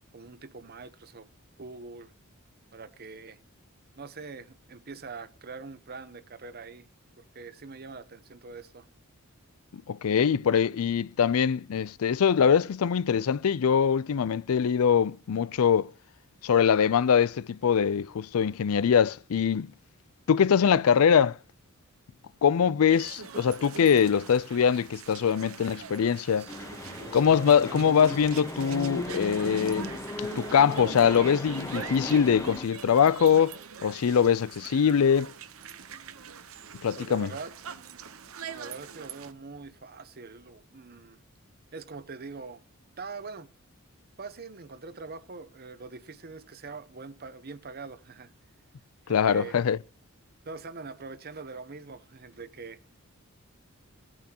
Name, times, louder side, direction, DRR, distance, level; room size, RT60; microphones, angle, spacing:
voice 1, 0.1-1.3 1.6-2.1 2.7-3.4 4.0-6.9 7.2-8.9 37.0-37.5 38.5-41.2 41.7-42.6 43.0-43.5 44.2-48.3 49.0-49.6 50.4-52.8, right 4 dB, 45° right, 0.9 m, -43 dB
voice 2, 9.7-15.9 16.4-19.7 20.3-21.4 22.4-26.5 27.1-35.3 36.8-37.3 49.1-49.8, left 7 dB, 85° left, 0.4 m, -23 dB
sound 1, 22.9-39.3, right 7 dB, 75° right, 0.8 m, -43 dB
sound 2, 26.5-32.7, left 1 dB, 15° left, 1.1 m, -37 dB
18.5 x 8.7 x 2.9 m
head